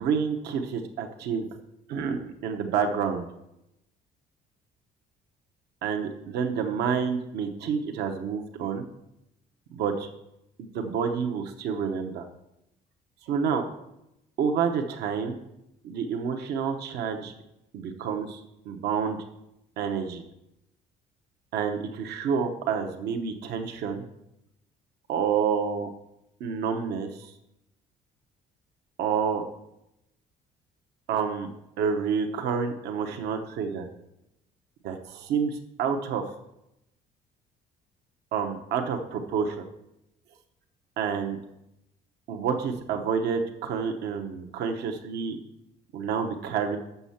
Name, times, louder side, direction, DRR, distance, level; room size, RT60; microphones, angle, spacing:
voice 1, 0.0-1.5 1.9-3.3 5.8-8.9 9.7-10.1 10.6-12.3 13.3-13.7 14.4-15.4 15.8-17.3 17.7-18.4 18.7-19.2 19.8-20.2 21.5-24.0 25.1-25.9 26.4-27.3 29.0-29.5 31.1-31.5 31.8-33.9 34.8-36.2 38.3-39.6 41.0-41.4 42.3-45.4 45.9-46.8, right 6 dB, 80° right, 5 dB, 0.9 m, -28 dB
6.9 x 6.4 x 5.7 m, 0.86 s
cardioid pair, 110°, 17 cm